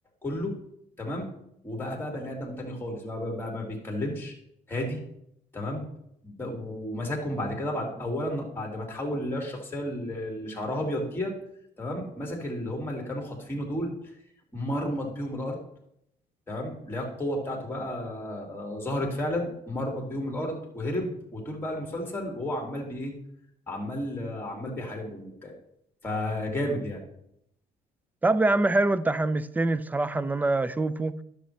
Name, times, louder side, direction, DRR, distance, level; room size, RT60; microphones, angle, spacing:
voice 1, 0.2-0.5 1.0-1.3 1.6-4.3 4.7-5.0 5.5-5.9 6.2-11.3 11.8-13.9 14.5-15.6 16.5-23.1 23.7-25.5 26.0-27.0, left 1 dB, 15° left, 2.2 m, -32 dB
voice 2, 28.2-31.2, right 2 dB, 10° right, 0.3 m, -24 dB
11.0 x 6.7 x 3.2 m
cardioid pair, 110°, 17 cm